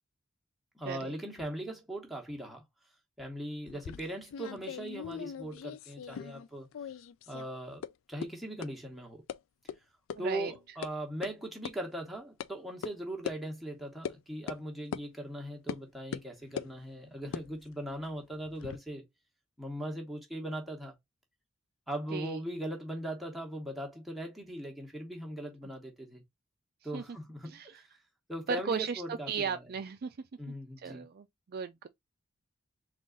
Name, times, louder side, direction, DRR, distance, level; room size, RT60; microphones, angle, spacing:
voice 1, 0.7-2.6 3.2-6.7 7.3-9.2 10.2-19.0 19.6-20.9 21.9-26.2 26.8-27.8 28.3-29.6 30.4-31.1, right 1 dB, ahead, 1.1 m, -39 dB
sound 1, 3.7-6.5 6.7-7.5 7.8-7.9 8.2-8.3 8.6-8.7 9.3-9.4 9.7-9.8 10.1-10.2 10.5-10.9 11.2-11.3 11.7-11.8 12.4-12.5 12.8-12.9 13.3-13.4 14.1-14.2 14.5-14.6 14.9-15.1 15.7-15.8 16.1-16.7 17.2-18.8, left 7 dB, 65° left, 0.3 m, -40 dB
voice 2, 10.1-10.5 22.1-22.4 26.9-27.2 27.5-27.7 28.5-30.2 30.5-31.9, right 6 dB, 45° right, 0.4 m, -36 dB
3.8 x 2.5 x 3.7 m
head